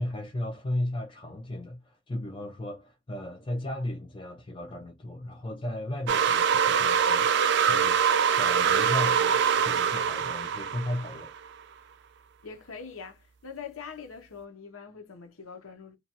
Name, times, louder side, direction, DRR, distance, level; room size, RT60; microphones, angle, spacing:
voice 1, 0.0-7.3 7.7-8.0 8.4-11.3, left 1 dB, 25° left, 0.4 m, -35 dB
sound 1, 6.1-11.4, right 7 dB, 55° right, 0.3 m, -24 dB
voice 2, 12.4-16.0, left 6 dB, 85° left, 0.8 m, -43 dB
2.8 x 2.3 x 2.7 m
head